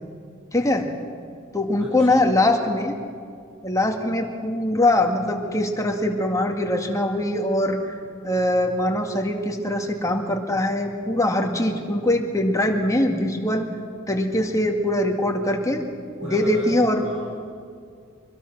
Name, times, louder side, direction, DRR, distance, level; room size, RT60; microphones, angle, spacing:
voice 1, 0.5-0.9 1.5-2.9 3.6-7.8 8.2-13.7 14.1-15.8 16.2-17.1, left 1 dB, 15° left, 2 dB, 2.1 m, -22 dB
voice 2, 1.8-2.3 16.2-17.2, right 1 dB, 70° right, -5 dB, 6.3 m, -37 dB
24.5 x 21.5 x 6.2 m, 2.3 s
head